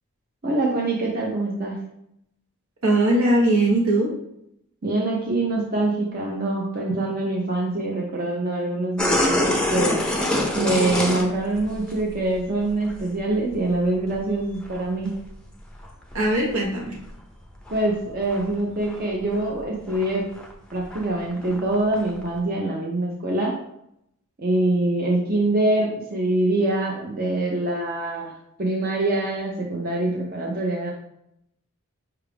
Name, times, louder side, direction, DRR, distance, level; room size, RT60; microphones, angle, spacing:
voice 1, 0.4-1.8 4.8-10.0 10.6-15.1 17.7-20.3 20.7-23.5 24.4-28.3 28.6-30.9, right 2 dB, 40° right, -1 dB, 0.6 m, -24 dB
voice 2, 2.8-4.1 16.1-17.0, right 1 dB, 75° right, -3 dB, 1.2 m, -20 dB
sound 1, 9.0-12.4 12.7-13.0 13.3-15.3 15.8-16.8 17.0-18.5 18.8-19.1 19.3-22.3, left 1 dB, 5° left, 0.5 m, -26 dB
5.7 x 2.4 x 3.4 m, 0.76 s
head